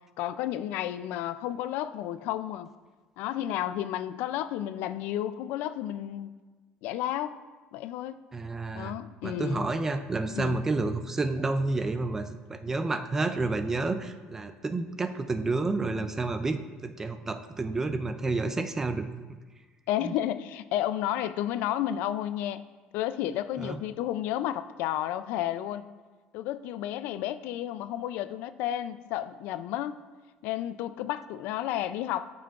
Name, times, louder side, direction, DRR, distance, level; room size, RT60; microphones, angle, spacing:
voice 1, 0.2-2.7 3.2-6.3 6.8-7.4 7.7-8.2 8.7-9.7 10.3-10.6 19.9-22.6 22.9-25.8 26.3-29.9 30.4-32.3, left 12 dB, 75° left, 13 dB, 0.4 m, -32 dB
voice 2, 8.3-8.9 9.2-19.4 20.0-20.1 23.6-23.8, right 3 dB, 15° right, 9 dB, 0.4 m, -30 dB
13.0 x 5.8 x 2.4 m, 1.4 s
cardioid pair, 155°, 3 cm